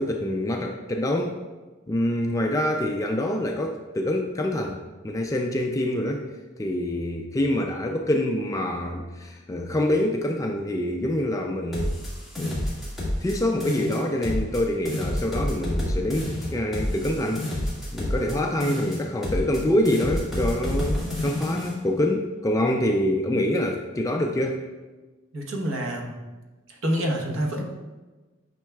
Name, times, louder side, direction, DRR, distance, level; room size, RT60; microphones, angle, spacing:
voice 1, 0.0-1.4 1.9-4.8 5.0-6.3 6.6-12.0 12.4-12.6 13.2-17.5 17.9-24.6, left 1 dB, 15° left, 2 dB, 0.3 m, -26 dB
sound 1, 11.7-13.4 13.6-14.6 14.9-18.4 18.6-19.6 19.9-21.7, left 1 dB, ahead, 1.9 m, -29 dB
voice 2, 25.3-26.1 26.8-27.7, equal, 75° right, 1 dB, 1.1 m, -27 dB
9.0 x 5.4 x 2.3 m, 1.2 s
head